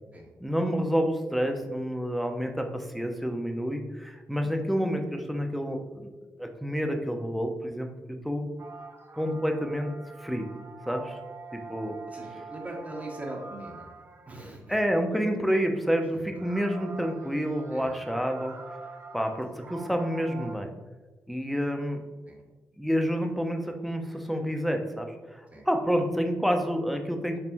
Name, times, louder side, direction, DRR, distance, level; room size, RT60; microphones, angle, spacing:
voice 1, 0.4-6.1 6.4-8.5 9.1-9.9 10.2-10.5 10.9-11.2 11.5-12.0 14.7-18.9 19.1-20.7 21.3-22.0 22.8-27.4, equal, ahead, 5 dB, 0.6 m, -29 dB
sound 1, 8.6-14.6 16.3-20.6, right 4 dB, 45° right, 0.6 m, -45 dB
voice 2, 12.1-13.9 14.3-14.6 16.1-16.2 17.7-17.9 22.2-22.4 25.5-25.7, right 1 dB, 25° right, 0 dB, 1.0 m, -40 dB
4.1 x 3.5 x 2.6 m, 1.2 s
supercardioid pair, 50°, 6 cm